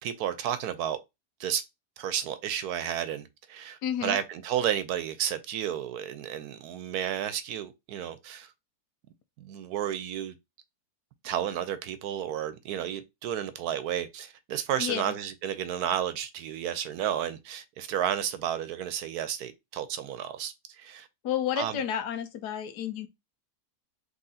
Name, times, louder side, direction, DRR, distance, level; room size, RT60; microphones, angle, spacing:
voice 1, 0.0-1.0 1.4-1.6 2.0-8.5 9.4-10.3 11.2-21.1 21.6-21.8, right 10 dB, 75° right, 1.1 m, -32 dB
voice 2, 3.8-4.2 14.8-15.2 21.2-23.1, left 9 dB, 90° left, 1.3 m, -31 dB
5.5 x 3.2 x 2.8 m
omnidirectional pair, 1.7 m